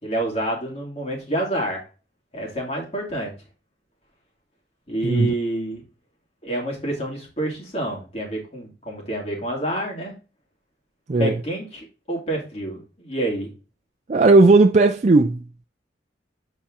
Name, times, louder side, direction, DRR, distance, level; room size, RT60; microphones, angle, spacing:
voice 1, 0.0-1.8 2.3-3.3 4.9-5.8 6.4-10.1 11.2-13.5, right 1 dB, 35° left, 2.5 m, -28 dB
voice 2, 5.0-5.3 11.1-11.4 14.1-15.4, right 3 dB, 40° right, 0.4 m, -15 dB
7.8 x 4.2 x 3.7 m
head